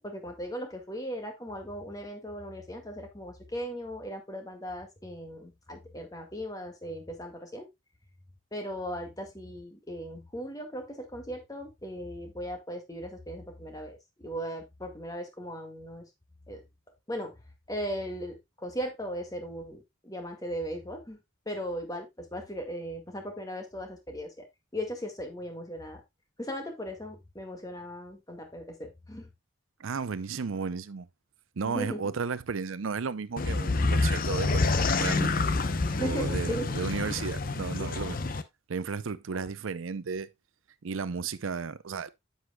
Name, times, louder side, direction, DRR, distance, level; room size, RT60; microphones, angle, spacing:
voice 1, 0.0-7.7 8.5-16.1 16.5-16.6 17.1-17.3 17.7-21.2 21.5-24.5 24.7-26.0 26.4-29.3 31.7-32.1 35.9-36.7 39.3-39.4, equal, 20° left, 1.9 m, -38 dB
voice 2, 29.8-31.1 31.6-35.4 36.0-38.2 38.7-40.3 40.8-42.1, right 5 dB, 80° right, 0.6 m, -34 dB
sound 1, 33.4-38.4, left 3 dB, 45° left, 0.7 m, -27 dB
9.7 x 7.9 x 2.3 m
head